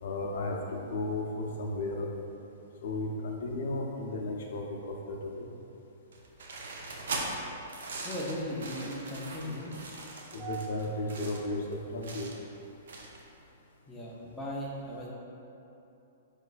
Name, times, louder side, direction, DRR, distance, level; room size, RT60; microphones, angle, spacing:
voice 1, 0.0-2.1 2.8-5.5 10.3-12.3, left 2 dB, 60° left, 0 dB, 0.6 m, -34 dB
sound 1, 6.1-13.3, right 3 dB, 80° right, 0.5 m, -40 dB
voice 2, 8.0-9.7 10.3-10.8 13.9-15.1, equal, 5° left, -6 dB, 0.5 m, -37 dB
3.1 x 3.1 x 3.9 m, 2.8 s
hypercardioid pair, 170°, 0 cm